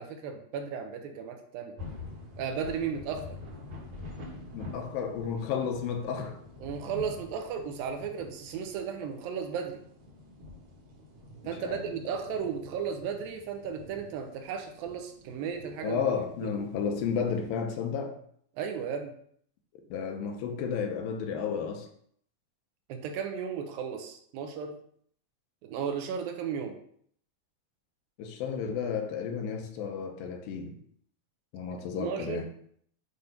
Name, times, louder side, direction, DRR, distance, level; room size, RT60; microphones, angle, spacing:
voice 1, 0.0-1.8 2.4-3.2 6.6-9.8 11.5-16.0 16.4-16.5 18.6-19.1 22.9-24.8 25.6-26.8 31.7-32.5, right 7 dB, 85° right, 4 dB, 2.5 m, -35 dB
sound 1, 1.8-17.5, left 3 dB, 50° right, 1.6 m, -47 dB
voice 2, 4.5-6.4 11.6-12.1 15.8-18.2 19.9-21.9 28.2-30.8 31.5-32.5, left 6 dB, 85° left, 4 dB, 2.5 m, -32 dB
8.3 x 2.8 x 5.1 m, 0.63 s
omnidirectional pair, 4.1 m